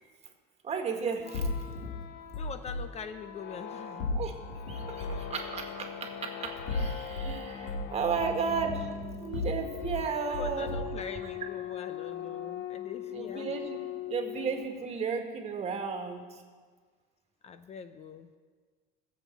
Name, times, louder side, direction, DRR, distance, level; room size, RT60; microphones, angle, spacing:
voice 1, 0.6-1.5 4.1-4.3 4.7-8.9 9.2-10.8 13.1-13.8 14.1-16.4, right 5 dB, 35° right, 3 dB, 1.8 m, -34 dB
sound 1, 1.2-14.9, left 9 dB, 65° left, 0.9 m, -41 dB
sound 2, 1.3-2.8 4.0-5.3 6.5-7.3 7.7-10.0 10.3-11.0, left 2 dB, 90° left, 2.6 m, -35 dB
voice 2, 2.3-4.1 10.3-13.5 17.4-18.3, left 6 dB, 35° left, 10 dB, 0.6 m, -43 dB
21.0 x 7.5 x 4.6 m, 1.5 s
cardioid pair, 125°, 19 cm